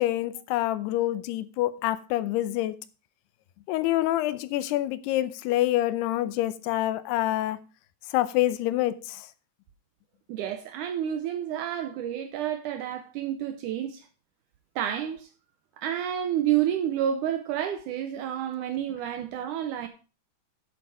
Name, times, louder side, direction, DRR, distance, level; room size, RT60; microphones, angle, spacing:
voice 1, 0.0-2.8 3.7-7.6 8.1-9.3, left 15 dB, 85° left, 2.8 m, -26 dB
voice 2, 10.3-14.1 14.8-15.3 15.8-19.9, right 10 dB, 85° right, 1.8 m, -29 dB
10.5 x 7.8 x 4.7 m
omnidirectional pair, 4.6 m